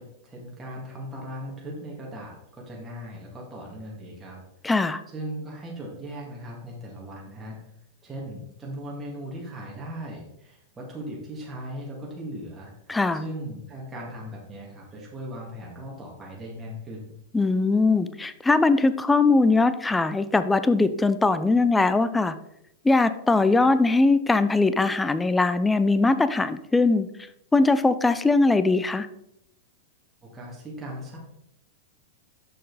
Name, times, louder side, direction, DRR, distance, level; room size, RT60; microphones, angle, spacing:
voice 1, 0.0-4.4 5.1-7.6 8.0-17.1 30.2-31.2, equal, 15° right, -4 dB, 2.1 m, -38 dB
voice 2, 4.6-5.0 12.9-13.2 17.3-22.3 22.8-27.1 27.5-29.1, left 3 dB, 10° left, 12 dB, 0.5 m, -21 dB
6.7 x 6.2 x 4.1 m, 0.80 s
hypercardioid pair, 110°, 0 cm